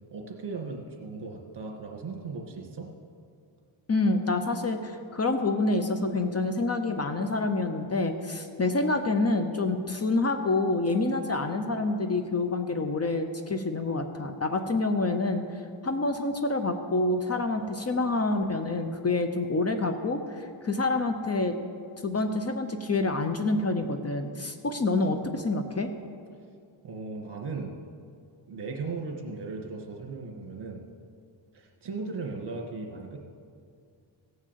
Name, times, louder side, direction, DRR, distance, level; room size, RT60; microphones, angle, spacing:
voice 1, 0.1-2.9 26.8-27.7 28.5-30.8 31.5-33.2, right 4 dB, 55° right, 2 dB, 1.9 m, -37 dB
voice 2, 3.9-15.4 15.8-21.6 22.0-25.9, left 2 dB, 30° left, 7 dB, 0.8 m, -27 dB
16.5 x 6.4 x 7.6 m, 2.3 s
wide cardioid pair, 120°, 49 cm